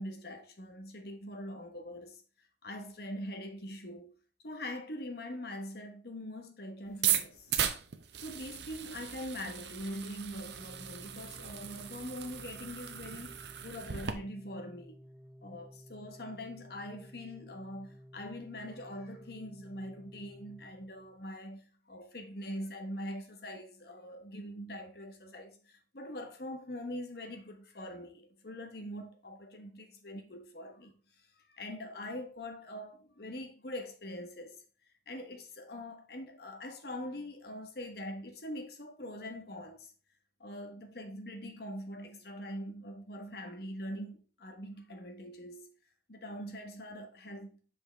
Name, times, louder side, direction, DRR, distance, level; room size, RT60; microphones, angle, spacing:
voice 1, 0.0-2.2 2.6-4.2 4.4-7.5 8.2-15.0 15.4-30.9 31.2-34.6 35.1-39.9 40.4-45.7 46.1-47.6, left 1 dB, 60° left, 1.2 m, -43 dB
sound 1, 6.9-14.1, right 10 dB, 75° right, 0.7 m, -36 dB
Organ, 10.4-21.3, equal, 5° right, 0.4 m, -54 dB
6.3 x 5.3 x 3.4 m
head